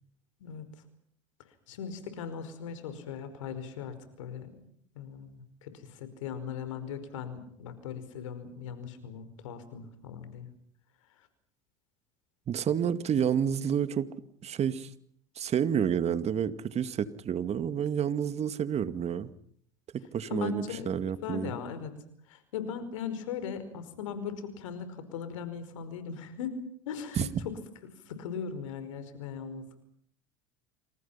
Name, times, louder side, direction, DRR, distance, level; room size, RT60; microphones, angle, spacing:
voice 1, 1.7-4.6 4.9-10.5 20.3-20.9 21.2-21.9 22.3-27.3 28.1-29.8, left 7 dB, 85° left, 11 dB, 5.2 m, -39 dB
voice 2, 12.5-14.1 14.4-14.9 15.4-19.3 19.9-21.5 27.2-27.5, right 8 dB, 45° right, 12 dB, 2.2 m, -29 dB
28.0 x 27.5 x 5.8 m, 0.63 s
hypercardioid pair, 80°, 16 cm